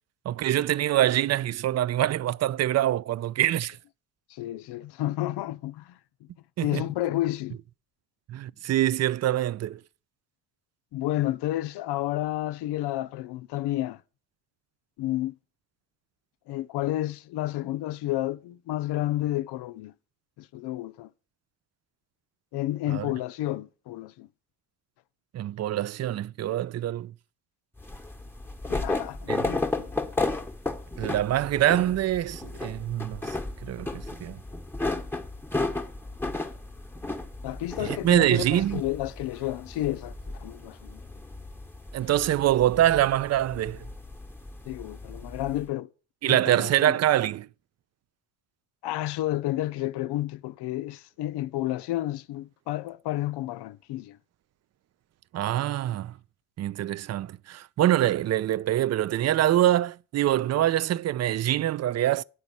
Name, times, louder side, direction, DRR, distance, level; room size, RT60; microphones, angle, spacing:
voice 1, 0.3-3.8 6.6-6.8 8.3-9.8 22.9-23.1 25.3-27.1 29.3-29.4 31.0-33.4 33.6-34.4 37.8-38.8 41.9-43.8 46.2-47.5 55.3-56.1 56.6-62.2, right 13 dB, 40° right, 0.4 m, -25 dB
voice 2, 4.3-6.3 6.6-7.6 10.9-14.0 15.0-15.4 16.5-19.9 20.4-21.1 22.5-24.3 28.7-29.9 37.4-41.0 44.7-45.9 46.3-47.0 48.8-54.2, left 15 dB, 70° left, 0.6 m, -31 dB
sound 1, 27.8-45.6, left 2 dB, 5° left, 1.0 m, -34 dB
9.7 x 4.0 x 7.3 m
hypercardioid pair, 50°, 43 cm